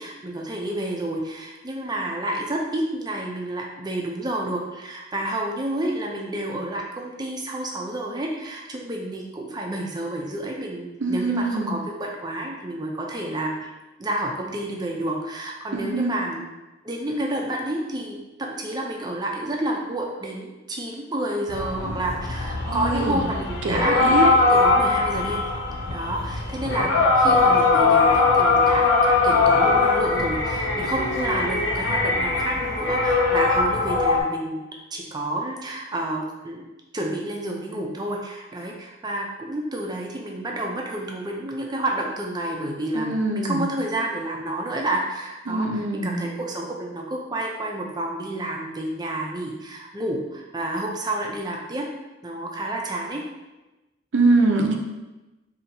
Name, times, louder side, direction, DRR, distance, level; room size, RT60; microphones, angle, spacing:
voice 1, 0.0-13.7 14.0-16.5 16.8-25.4 25.9-34.7 34.9-36.7 36.9-51.9 52.2-53.2, right 1 dB, 20° right, 0 dB, 0.5 m, -30 dB
voice 2, 11.0-11.8 15.7-16.1 22.7-23.2 23.6-24.3 42.9-43.6 45.5-46.2 54.1-54.8, right 3 dB, 70° right, 2 dB, 0.5 m, -23 dB
sound 1, 21.5-34.2, left 3 dB, 65° left, 0.6 m, -21 dB
4.2 x 2.8 x 2.7 m, 1.1 s
head